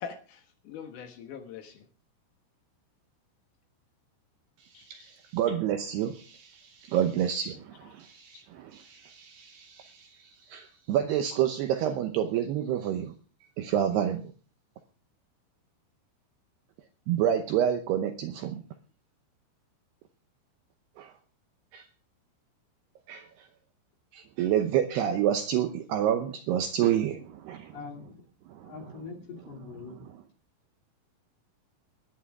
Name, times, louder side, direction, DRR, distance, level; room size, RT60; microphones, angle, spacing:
voice 1, 0.0-1.8 4.7-5.1, left 7 dB, 85° left, 5 dB, 1.8 m, -43 dB
voice 2, 4.8-13.1 13.6-14.3 17.1-18.6 21.0-21.1 21.7-21.8 23.1-23.5 24.1-27.8 28.5-28.7, right 10 dB, 80° right, 7 dB, 2.4 m, -29 dB
voice 3, 27.7-28.2 28.6-30.0, left 4 dB, 55° left, 0 dB, 4.4 m, -43 dB
21.0 x 9.9 x 3.6 m, 0.39 s
omnidirectional pair, 5.8 m